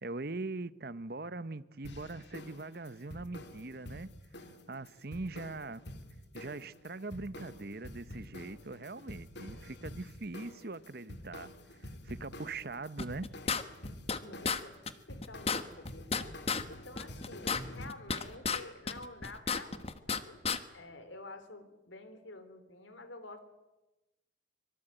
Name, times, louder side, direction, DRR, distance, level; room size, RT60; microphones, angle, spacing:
voice 1, 0.0-4.1 4.7-5.8 6.3-11.5 11.8-13.3, right 3 dB, 50° right, 0.9 m, -41 dB
sound 1, 1.8-17.9, left 1 dB, 60° left, 2.4 m, -48 dB
sound 2, 13.0-14.2 14.4-14.6 14.9-15.0 15.2-16.6 17.0-18.6 18.9-20.2 20.4-20.6, left 5 dB, 30° left, 1.2 m, -32 dB
voice 2, 13.9-14.8 15.1-16.3 16.7-23.4, left 2 dB, 75° left, 3.6 m, -49 dB
24.5 x 23.0 x 9.1 m
head